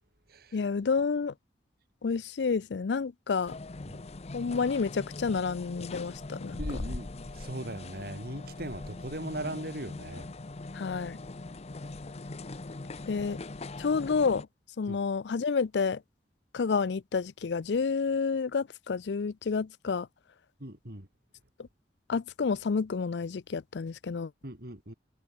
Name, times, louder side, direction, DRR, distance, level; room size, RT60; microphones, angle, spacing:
voice 1, 0.5-1.3 2.0-3.5 4.3-6.6 10.7-11.2 13.1-13.4 13.8-14.5 14.8-16.0 16.5-20.1 21.6-21.7 22.1-24.3, left 5 dB, 75° left, 0.5 m, -29 dB
sound 1, 3.5-14.4, left 2 dB, 35° left, 0.7 m, -41 dB
voice 2, 6.6-10.3 14.9-15.0 20.6-21.1 24.4-24.9, right 1 dB, 60° right, 4.2 m, -39 dB
head